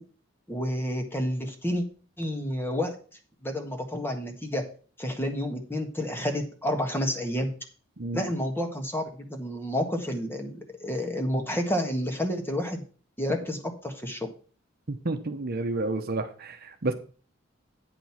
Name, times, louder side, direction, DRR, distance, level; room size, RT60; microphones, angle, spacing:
voice 1, 0.5-1.8 2.2-3.0 3.4-4.6 5.0-7.5 8.1-12.8 13.2-14.3, equal, 10° left, 1.5 m, -30 dB
voice 2, 14.9-16.9, right 2 dB, 50° right, 0.9 m, -30 dB
9.2 x 5.2 x 5.9 m
head